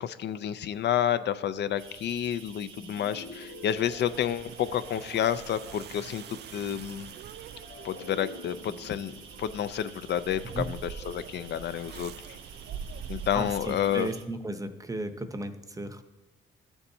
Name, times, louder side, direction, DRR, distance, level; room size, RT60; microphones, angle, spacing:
voice 1, 0.0-6.2 6.5-7.1 7.8-12.1 13.1-14.1, left 10 dB, 60° left, 12 dB, 0.4 m, -30 dB
sound 1, 1.8-14.2, right 6 dB, 75° right, 1.3 m, -50 dB
sound 2, 2.7-5.1 7.5-10.9, left 3 dB, 80° left, 1.7 m, -48 dB
sound 3, 3.6-14.0, right 7 dB, 55° right, 0.4 m, -44 dB
voice 2, 13.3-16.0, right 2 dB, 15° right, 9 dB, 0.7 m, -35 dB
13.0 x 7.0 x 2.7 m, 1.2 s
cardioid pair, 90°, 20 cm